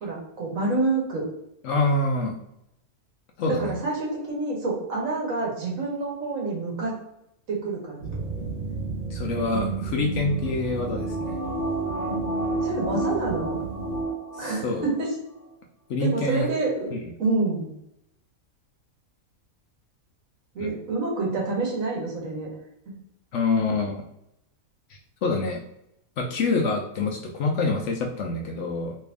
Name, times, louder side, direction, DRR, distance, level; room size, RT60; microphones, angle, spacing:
voice 1, 0.0-1.3 3.5-6.9 7.5-8.2 12.6-13.6 14.4-15.1 16.0-16.9 17.2-17.7 20.5-22.5, right 3 dB, 65° right, -2 dB, 1.5 m, -27 dB
voice 2, 1.6-2.4 3.4-3.8 9.1-11.4 14.3-14.8 15.9-16.5 16.9-17.0 20.6-20.7 23.3-24.0 24.9-25.7 26.2-29.0, left 3 dB, 65° left, 1 dB, 0.8 m, -26 dB
sound 1, 8.0-14.0, right 4 dB, 25° right, 1.3 m, -33 dB
sound 2, 10.3-15.1 15.4-15.5, right 2 dB, 25° left, 0.4 m, -31 dB
3.3 x 2.6 x 3.4 m, 0.81 s
omnidirectional pair, 1.5 m